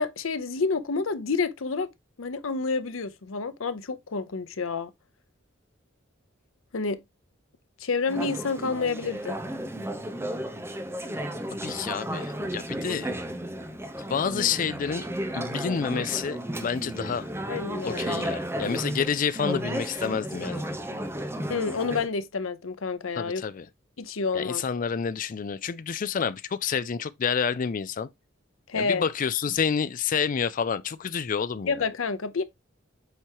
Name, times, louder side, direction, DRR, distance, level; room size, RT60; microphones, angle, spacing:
voice 1, 0.0-1.9 2.2-4.9 6.7-7.0 7.8-9.4 17.5-18.0 21.5-23.4 24.0-24.6 28.7-29.0 31.7-32.4, left 4 dB, 90° left, 0.8 m, -29 dB
Conversation / Chatter, 8.1-22.1, right 1 dB, 15° right, 0.8 m, -33 dB
voice 2, 11.5-13.1 14.1-15.1 15.3-17.3 17.8-20.7 23.1-23.7 24.3-28.1 28.7-31.8, left 6 dB, 40° left, 0.4 m, -29 dB
8.1 x 4.4 x 2.9 m
head